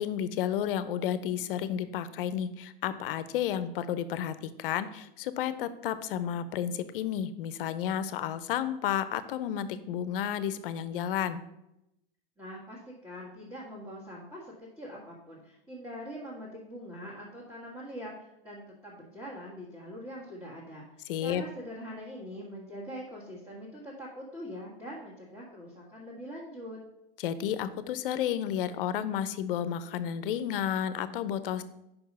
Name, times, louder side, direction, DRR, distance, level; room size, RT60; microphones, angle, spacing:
voice 1, 0.0-11.4 21.1-21.4 27.2-31.6, left 9 dB, 65° left, 13 dB, 0.6 m, -32 dB
voice 2, 12.4-20.8 21.2-26.8, equal, 10° right, -6 dB, 1.7 m, -43 dB
5.4 x 4.6 x 5.4 m, 0.86 s
hypercardioid pair, 105°, 30 cm